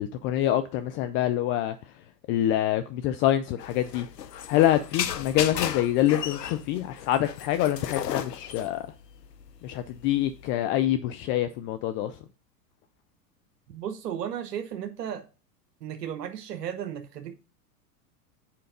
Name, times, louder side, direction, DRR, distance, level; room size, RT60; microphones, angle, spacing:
voice 1, 0.0-1.8 2.3-4.1 4.5-8.9 9.6-12.2, left 12 dB, 30° left, 0.3 m, -26 dB
sound 1, 3.6-10.5, left 9 dB, 90° left, 0.8 m, -34 dB
voice 2, 13.7-15.3 15.8-17.4, right 9 dB, 80° right, 1.0 m, -34 dB
7.1 x 5.1 x 5.0 m
hypercardioid pair, 100°, 48 cm